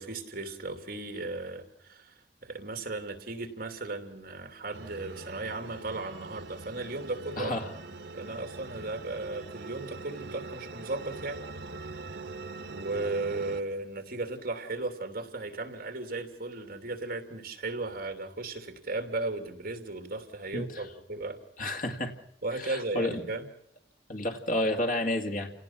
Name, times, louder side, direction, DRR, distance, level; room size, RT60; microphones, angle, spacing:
voice 1, 0.0-2.1 2.4-7.5 8.1-11.4 12.7-21.4 22.4-23.5, right 2 dB, 55° right, 7 dB, 2.8 m, -36 dB
sound 1, 4.7-13.6, right 3 dB, 70° right, 1.2 m, -43 dB
voice 2, 7.4-7.7 20.5-20.6 21.6-22.1 22.6-23.2 24.1-25.5, left 1 dB, 50° left, 4 dB, 2.1 m, -30 dB
28.5 x 18.0 x 6.0 m, 0.72 s
head